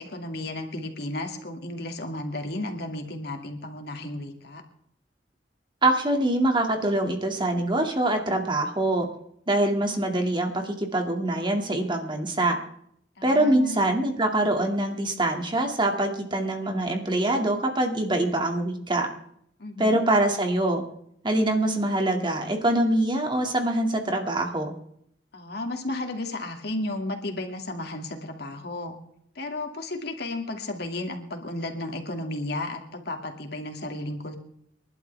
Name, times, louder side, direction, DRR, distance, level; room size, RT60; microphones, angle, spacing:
voice 1, 0.0-4.6 13.2-13.8 19.6-20.0 25.3-28.9 29.4-34.4, left 2 dB, 65° left, 3 dB, 2.5 m, -33 dB
voice 2, 5.8-9.1 9.5-12.6 13.2-19.1 19.8-20.8 21.2-24.7, right 1 dB, 25° right, 3 dB, 2.4 m, -24 dB
29.0 x 12.0 x 3.5 m, 0.69 s
head